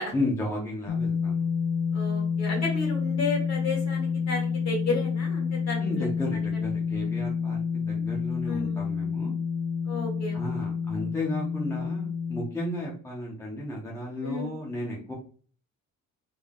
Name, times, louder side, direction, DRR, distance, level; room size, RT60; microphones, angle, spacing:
voice 1, 0.1-1.4 5.8-9.3 10.3-15.1, left 1 dB, 10° left, -3 dB, 0.8 m, -33 dB
sound 1, 0.9-12.4, left 6 dB, 80° left, 0.7 m, -29 dB
voice 2, 1.9-6.1 8.5-8.8 9.8-10.7 14.2-14.5, left 3 dB, 50° left, 0 dB, 1.7 m, -32 dB
3.6 x 3.3 x 2.4 m, 0.41 s
cardioid pair, 165°, 34 cm